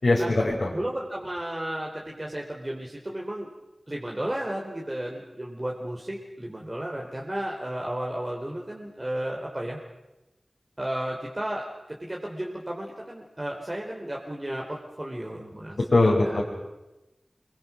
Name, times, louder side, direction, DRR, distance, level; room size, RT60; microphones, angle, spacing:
voice 1, 0.0-0.7 15.9-16.4, left 2 dB, 70° left, -4 dB, 4.9 m, -21 dB
voice 2, 0.7-3.5 3.9-9.8 10.8-15.8 16.1-16.4, right 1 dB, 30° right, -2 dB, 4.0 m, -33 dB
26.5 x 23.5 x 6.2 m, 1.0 s
cardioid pair, 40°, 0 cm